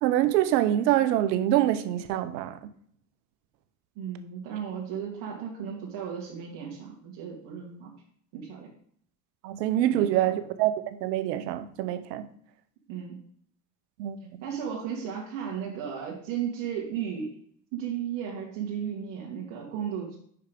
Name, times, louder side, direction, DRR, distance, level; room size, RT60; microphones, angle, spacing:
voice 1, 0.0-2.6 9.4-12.3 14.0-14.2, right 13 dB, 75° right, 0.9 m, -25 dB
voice 2, 4.0-7.9 8.3-8.7 9.9-10.1 12.9-13.2 14.4-17.3 17.7-20.2, right 8 dB, 55° right, 1.9 m, -35 dB
5.8 x 5.6 x 5.1 m
supercardioid pair, 100°, 49 cm